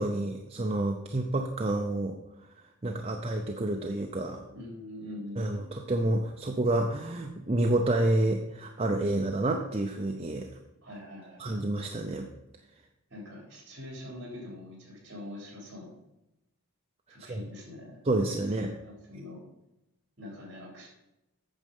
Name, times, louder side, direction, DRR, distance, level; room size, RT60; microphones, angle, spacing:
voice 1, 0.0-2.2 2.6-4.4 5.4-10.5 11.4-12.3 17.3-17.4 18.1-18.7, right 1 dB, 30° right, 3 dB, 0.5 m, -29 dB
voice 2, 4.5-6.1 10.8-11.6 13.1-16.0 17.1-18.0 18.6-19.4 20.2-20.9, left 1 dB, 55° right, 0 dB, 3.3 m, -44 dB
8.8 x 6.3 x 5.3 m, 0.91 s
head